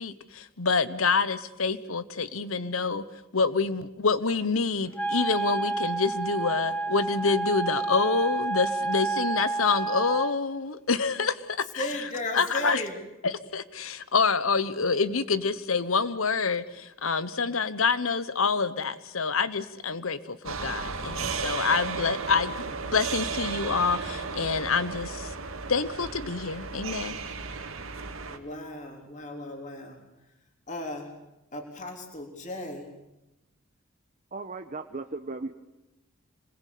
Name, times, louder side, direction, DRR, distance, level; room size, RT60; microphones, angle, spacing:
voice 1, 0.0-3.0 3.3-12.8 13.2-25.4 25.7-27.2, left 4 dB, 85° left, 15 dB, 1.2 m, -27 dB
Wind instrument woodwind instrument, 4.9-10.3, right 3 dB, 10° left, 1.3 m, -29 dB
voice 2, 11.8-13.0 28.3-30.0 30.7-31.1 31.5-32.9, left 1 dB, 35° left, 3 dB, 3.7 m, -36 dB
sound 1, 20.4-28.4, right 5 dB, 80° right, 2.3 m, -34 dB
voice 3, 34.3-35.5, right 3 dB, 40° right, 5 dB, 1.1 m, -36 dB
26.5 x 21.0 x 8.5 m, 0.94 s
head